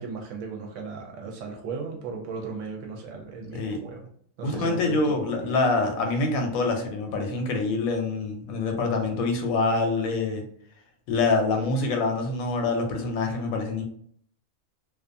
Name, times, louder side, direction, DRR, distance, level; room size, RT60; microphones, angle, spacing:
voice 1, 0.0-4.0 4.4-5.5, right 4 dB, 70° right, 1 dB, 0.8 m, -36 dB
voice 2, 4.4-10.4 11.1-13.8, left 3 dB, 85° left, 3 dB, 1.0 m, -25 dB
2.4 x 2.3 x 2.5 m, 0.63 s
omnidirectional pair, 1.4 m